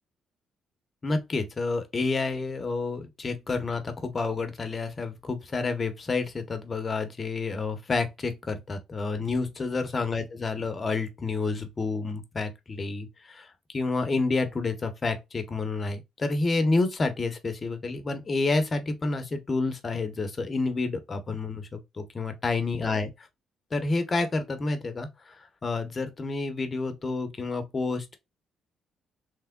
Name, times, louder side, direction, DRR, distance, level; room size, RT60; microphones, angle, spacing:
voice 1, 1.0-23.3 23.7-28.2, left 3 dB, 35° left, 0.8 m, -29 dB
3.4 x 3.2 x 2.2 m
cardioid pair, 90°, 0 cm